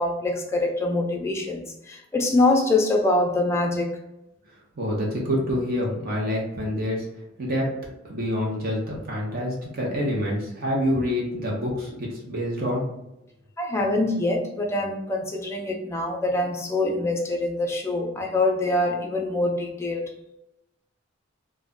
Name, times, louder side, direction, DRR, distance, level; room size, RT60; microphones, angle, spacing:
voice 1, 0.0-3.9 13.6-20.1, left 2 dB, 15° left, 1 dB, 0.4 m, -24 dB
voice 2, 4.8-7.1 7.4-7.7 8.0-12.8, equal, 50° right, -3 dB, 0.7 m, -27 dB
2.3 x 2.1 x 3.6 m, 0.87 s
head